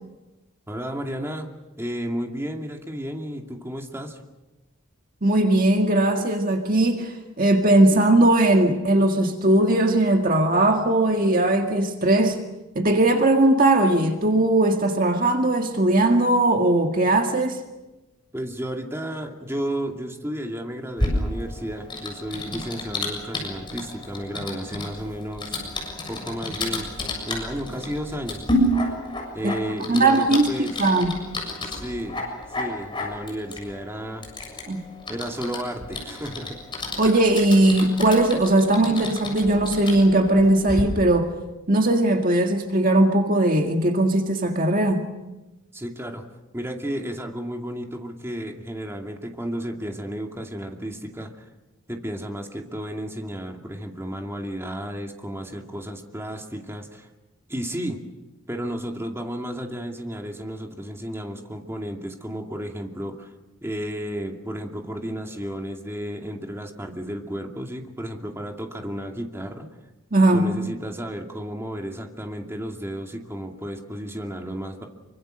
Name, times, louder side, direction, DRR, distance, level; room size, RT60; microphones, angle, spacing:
voice 1, 0.7-1.5 1.8-4.2 18.3-25.6 26.1-26.9 27.2-28.4 29.3-30.8 31.7-32.2 32.6-34.3 35.1-36.6 45.7-46.2 46.5-51.5 51.9-57.1 57.5-58.0 58.5-63.3 63.6-69.7 70.3-74.9, equal, 10° right, 2.4 m, -32 dB
voice 2, 5.2-12.4 12.8-17.6 29.4-29.5 29.9-31.2 34.7-34.9 37.0-41.3 41.7-45.1 70.1-70.5, right 1 dB, 40° right, 1.8 m, -19 dB
Typing, 21.0-40.8, left 1 dB, 25° left, 7.2 m, -31 dB
26.5 x 25.0 x 6.6 m
head